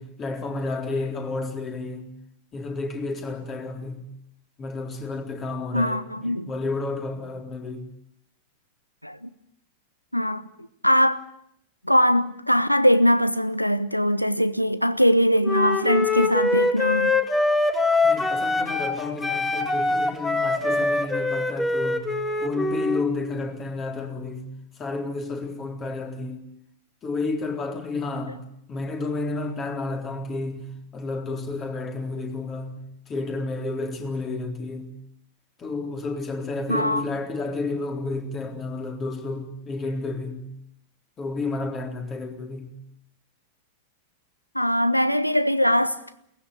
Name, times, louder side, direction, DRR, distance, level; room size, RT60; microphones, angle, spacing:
voice 1, 0.0-2.1 2.5-4.1 4.6-7.8 18.0-24.5 24.8-26.4 27.0-34.9 35.6-40.5 41.2-42.8, left 3 dB, 25° left, 4.0 m, -31 dB
voice 2, 5.7-6.5 9.0-9.3 10.1-10.4 10.8-11.2 11.8-17.2 36.7-37.0 44.5-46.0, equal, 90° left, 0.9 m, -21 dB
Wind instrument woodwind instrument, 15.4-19.0 19.2-23.1, left 2 dB, 10° left, 2.4 m, -23 dB
22.5 x 19.0 x 9.7 m
figure-of-eight pair, 90°, 0 cm